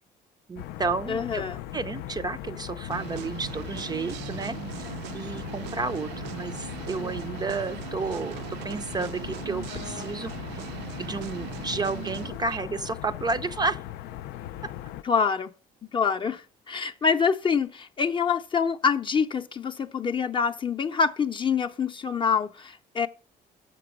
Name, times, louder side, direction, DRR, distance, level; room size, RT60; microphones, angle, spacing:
voice 1, 0.5-1.4 1.7-4.6 5.1-10.6 11.0-13.8 14.6-14.7, right 4 dB, 25° right, 0.4 m, -31 dB
sound 1, 0.6-15.0, left 13 dB, 85° left, 0.4 m, -39 dB
voice 2, 1.1-1.6 15.0-15.5 15.9-16.4 16.7-23.1, left 6 dB, 30° left, 0.6 m, -26 dB
sound 2, 2.9-12.6, right 14 dB, 85° right, 0.4 m, -39 dB
6.8 x 6.0 x 6.0 m
cardioid pair, 110°, 17 cm